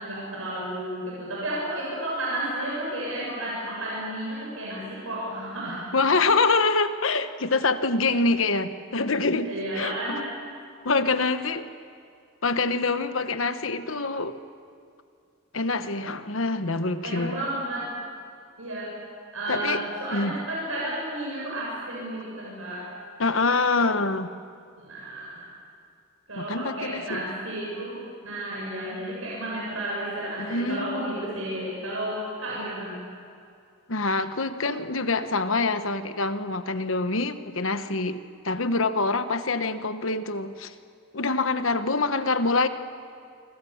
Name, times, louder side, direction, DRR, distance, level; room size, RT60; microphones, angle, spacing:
voice 1, 0.0-5.8 9.5-10.2 17.0-17.9 18.6-19.0 19.3-22.9 24.8-25.5 26.3-28.0 28.2-33.0, right 1 dB, 80° right, -5 dB, 7.7 m, -32 dB
voice 2, 5.9-9.5 9.7-10.2 10.8-11.7 12.4-14.4 15.5-17.4 19.5-19.8 20.1-20.4 23.2-24.3 26.4-27.2 30.4-31.1 33.9-40.7 41.1-42.7, left 3 dB, 75° left, 10 dB, 1.2 m, -25 dB
27.5 x 25.5 x 7.3 m, 2.3 s
head